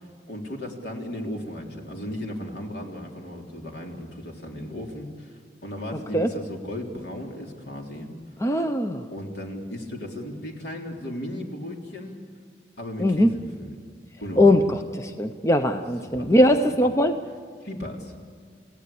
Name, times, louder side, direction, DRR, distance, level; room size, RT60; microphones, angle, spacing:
voice 1, 0.3-8.1 9.1-12.2 12.8-13.8 14.2-14.5 16.0-16.4 16.8-16.9 17.6-18.1, left 1 dB, 70° left, 1 dB, 3.7 m, -35 dB
voice 2, 8.4-9.1 13.0-13.3 14.4-17.1, left 1 dB, 15° left, 7 dB, 0.7 m, -20 dB
29.0 x 16.5 x 8.6 m, 2.1 s
head